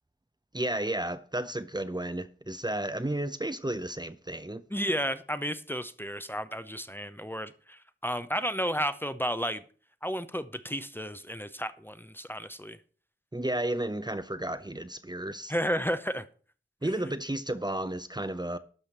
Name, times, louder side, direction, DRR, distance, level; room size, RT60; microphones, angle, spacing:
voice 1, 0.5-4.6 13.3-15.5 16.8-18.6, right 1 dB, 20° right, 0.7 m, -32 dB
voice 2, 4.7-9.6 10.0-12.8 15.5-16.3, equal, 10° left, 0.8 m, -32 dB
12.5 x 5.1 x 7.3 m
wide cardioid pair, 55°, 20 cm